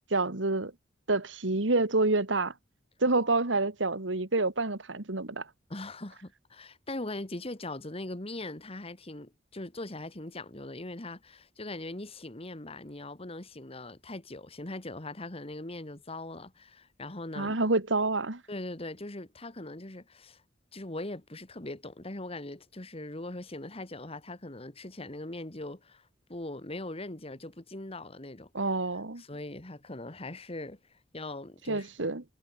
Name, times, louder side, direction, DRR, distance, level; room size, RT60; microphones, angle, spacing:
voice 1, 0.1-0.7 1.1-2.5 3.0-5.5 17.4-18.4 28.5-29.2 31.7-32.2, right 2 dB, 90° right, 2.0 m, -28 dB
voice 2, 5.7-17.6 18.5-20.4 20.7-28.5 29.2-32.1, left 2 dB, 30° left, 2.0 m, -41 dB
head